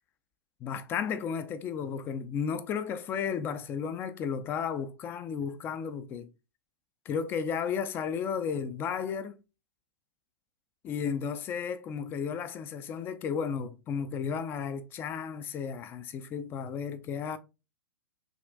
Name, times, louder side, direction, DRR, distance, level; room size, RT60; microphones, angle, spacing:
voice 1, 0.6-6.3 7.1-9.4 10.8-17.4, left 7 dB, 20° left, 0.4 m, -33 dB
6.1 x 2.5 x 2.2 m
figure-of-eight pair, 110°, 12 cm